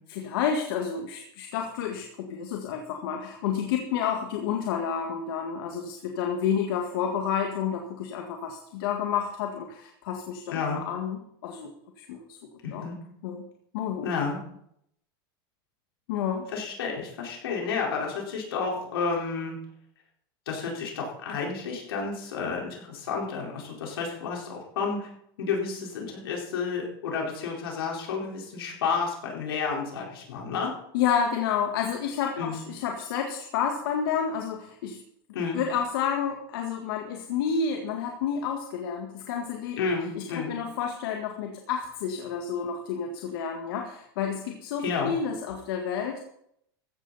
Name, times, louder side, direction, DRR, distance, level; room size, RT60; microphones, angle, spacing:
voice 1, 0.1-11.7 12.0-12.4 12.7-12.8 13.2-13.5 13.7-14.1 16.1-16.5 30.9-35.0 35.5-39.9 40.2-46.2, left 7 dB, 75° left, 3 dB, 1.8 m, -30 dB
voice 2, 10.5-10.8 12.6-13.0 14.0-14.4 16.5-19.6 20.5-25.1 25.4-30.7 32.4-32.6 35.3-35.6 39.8-40.6 44.8-45.1, left 5 dB, 90° left, -1 dB, 4.4 m, -31 dB
15.0 x 13.5 x 4.2 m, 0.73 s
supercardioid pair, 120°, 12 cm